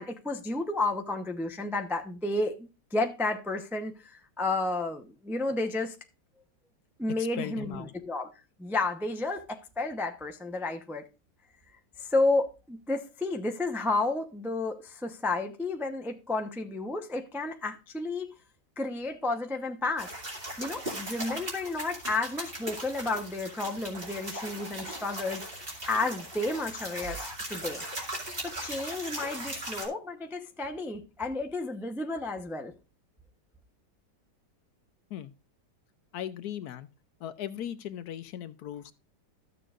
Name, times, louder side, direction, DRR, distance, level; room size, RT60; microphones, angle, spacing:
voice 1, 0.0-5.9 7.0-8.3 8.6-11.0 12.0-18.3 18.8-20.1 20.6-25.4 25.9-27.8 28.4-32.7, left 2 dB, 5° right, 0.4 m, -31 dB
voice 2, 7.2-7.9 35.1-35.3 36.1-36.9 37.2-38.9, left 10 dB, 70° left, 1.1 m, -38 dB
sound 1, 20.0-29.9, right 1 dB, 30° right, 2.7 m, -39 dB
13.5 x 6.9 x 2.5 m
omnidirectional pair, 1.9 m